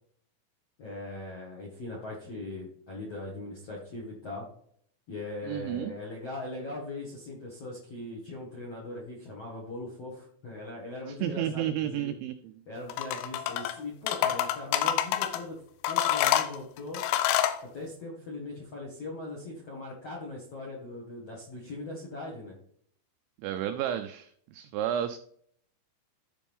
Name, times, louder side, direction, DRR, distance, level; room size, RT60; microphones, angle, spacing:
voice 1, 0.8-4.4 5.1-12.1 12.7-15.6 15.9-17.0 17.7-22.5, left 2 dB, 65° left, -3 dB, 1.5 m, -40 dB
voice 2, 5.4-5.9 11.1-12.6 23.4-25.2, right 10 dB, 90° right, 8 dB, 2.6 m, -32 dB
sound 1, 12.9-13.7 14.1-15.4 15.8-17.6, left 11 dB, 90° left, 3.4 m, -27 dB
13.5 x 5.1 x 3.5 m, 0.63 s
omnidirectional pair, 5.8 m